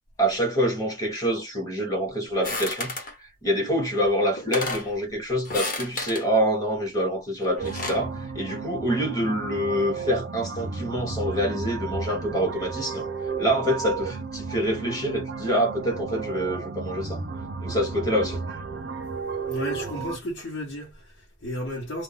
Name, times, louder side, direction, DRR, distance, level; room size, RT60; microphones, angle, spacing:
voice 1, 0.2-13.1 13.4-17.2 17.6-18.4, equal, 20° left, 0.8 m, -26 dB
sound 1, 2.4-3.1 4.0-4.1 4.4-4.9 5.4-6.3 7.4-8.1, left 2 dB, 45° left, 0.9 m, -32 dB
sound 2, 7.6-20.2, right 4 dB, 55° right, 0.4 m, -33 dB
voice 2, 19.4-22.0, left 1 dB, 70° left, 0.9 m, -33 dB
2.2 x 2.0 x 3.7 m
head